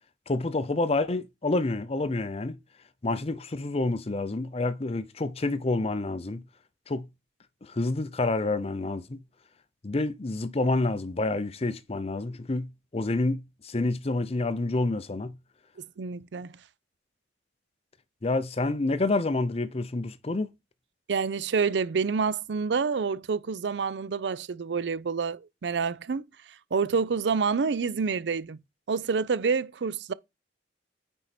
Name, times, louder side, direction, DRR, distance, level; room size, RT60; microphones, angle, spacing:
voice 1, 0.3-2.6 3.0-6.4 6.9-7.1 7.6-9.2 9.8-15.3 18.2-20.5, left 2 dB, 35° left, 0.6 m, -28 dB
voice 2, 16.0-16.5 21.1-26.2 26.7-28.6 28.9-30.1, right 5 dB, 75° right, 0.5 m, -28 dB
9.1 x 4.6 x 4.2 m
head